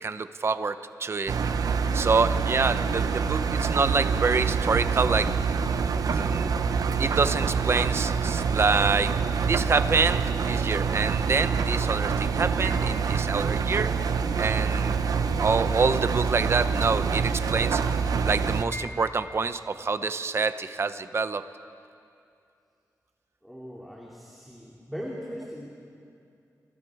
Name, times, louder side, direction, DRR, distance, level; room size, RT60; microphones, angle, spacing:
voice 1, 0.0-1.4 1.9-5.3 5.8-9.2 9.5-13.9 14.4-15.0 15.4-17.8 18.2-21.4, right 4 dB, 40° right, 12 dB, 0.7 m, -26 dB
Engine, 1.3-18.6, right 5 dB, 75° right, 0.9 m, -26 dB
sound 1, 12.6-15.4 16.1-19.5, left 1 dB, 35° left, 3.7 m, -49 dB
voice 2, 23.4-25.7, equal, ahead, -4 dB, 2.5 m, -39 dB
29.5 x 23.5 x 4.8 m, 2.5 s
wide cardioid pair, 150°, 6 cm